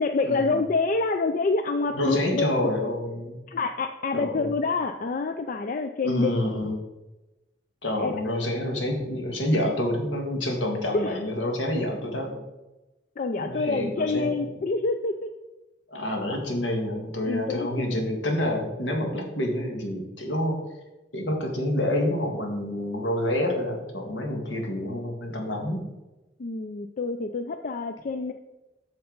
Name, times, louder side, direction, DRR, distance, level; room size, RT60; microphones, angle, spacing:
voice 1, 0.0-2.5 3.5-6.4 8.0-8.1 10.9-11.3 13.2-15.3 17.2-18.0 26.4-28.3, left 3 dB, 45° left, 7 dB, 0.4 m, -27 dB
voice 2, 1.9-3.4 4.1-4.5 6.0-6.8 7.8-12.4 13.4-14.3 15.9-20.6 21.1-25.8, left 1 dB, 75° left, 1 dB, 1.7 m, -28 dB
7.9 x 6.7 x 3.9 m, 1.0 s
head